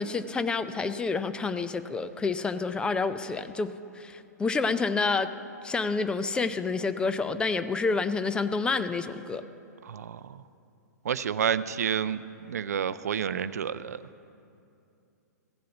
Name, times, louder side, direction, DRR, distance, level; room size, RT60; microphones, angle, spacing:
voice 1, 0.0-5.3 5.6-9.4, left 4 dB, 10° left, 11 dB, 0.4 m, -28 dB
voice 2, 9.8-10.4 11.0-12.2 12.5-14.0, right 8 dB, 60° right, 15 dB, 0.4 m, -29 dB
15.5 x 7.6 x 8.1 m, 2.6 s
figure-of-eight pair, 110°, 9 cm